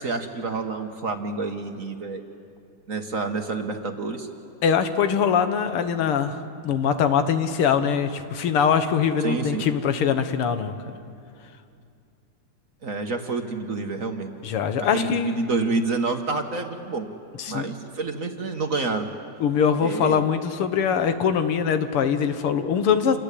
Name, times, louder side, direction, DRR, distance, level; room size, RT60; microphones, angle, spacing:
voice 1, 0.0-2.2 2.9-4.3 9.2-9.7 12.8-14.3 14.9-17.1 17.5-19.1 19.8-20.2, right 3 dB, 40° right, 5 dB, 1.6 m, -28 dB
voice 2, 4.6-6.4 6.6-10.7 14.4-15.4 17.4-17.7 19.4-23.2, left 7 dB, 85° left, 9 dB, 2.1 m, -22 dB
28.5 x 20.0 x 8.5 m, 2.5 s
omnidirectional pair, 2.4 m